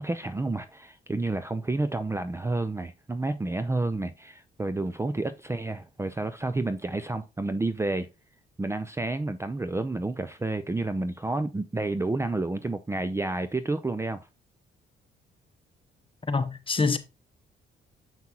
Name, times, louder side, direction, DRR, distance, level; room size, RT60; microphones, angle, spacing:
voice 1, 0.0-8.1 8.6-14.3, right 2 dB, 15° right, 0.5 m, -30 dB
voice 2, 16.3-17.0, left 4 dB, 25° left, 1.0 m, -25 dB
7.2 x 5.8 x 2.9 m
cardioid pair, 90°, 20 cm